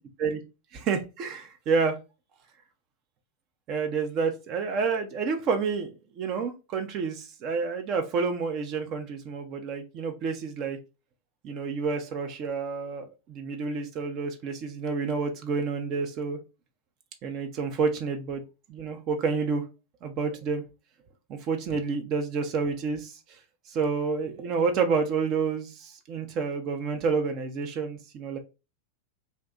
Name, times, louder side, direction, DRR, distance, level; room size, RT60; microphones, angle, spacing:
voice 1, 0.7-2.0 3.7-10.8 11.4-16.4 17.2-18.4 18.7-19.6 20.0-20.6 21.3-23.4 23.7-28.4, right 5 dB, 35° right, 5 dB, 0.5 m, -29 dB
2.7 x 2.2 x 3.6 m, 0.28 s
figure-of-eight pair, 90°, 0 cm